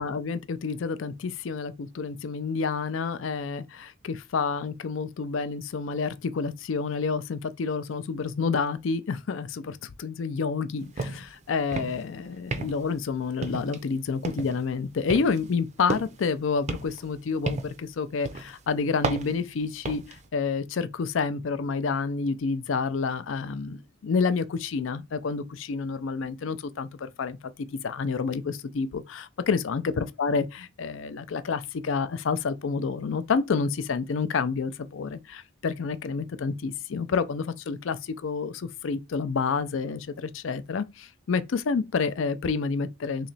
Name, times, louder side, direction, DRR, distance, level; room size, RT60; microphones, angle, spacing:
voice 1, 0.0-27.4 27.8-43.3, left 5 dB, 65° left, 0.4 m, -29 dB
sound 1, 11.0-11.3 11.6-12.1 12.5-13.0 13.4-13.9 14.2-14.6 15.1-16.3 16.7-17.8 18.3-18.5 19.0-20.2, right 3 dB, 35° right, 0.5 m, -33 dB
3.2 x 2.9 x 4.0 m
head